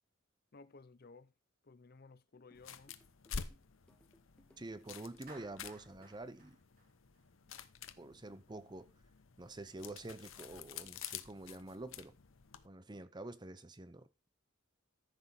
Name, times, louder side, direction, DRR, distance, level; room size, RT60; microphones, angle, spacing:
voice 1, 0.5-1.3 1.6-2.9, left 3 dB, 50° left, 0.6 m, -57 dB
sound 1, 2.5-12.7, left 6 dB, 85° left, 0.8 m, -50 dB
sound 2, 2.5-6.5, equal, 5° left, 1.2 m, -69 dB
voice 2, 4.6-6.6 8.0-8.9 9.4-12.1 12.6-14.3, right 2 dB, 20° right, 0.7 m, -48 dB
Clapping, 5.3-7.6, right 3 dB, 45° right, 3.1 m, -59 dB
14.0 x 6.1 x 4.0 m
head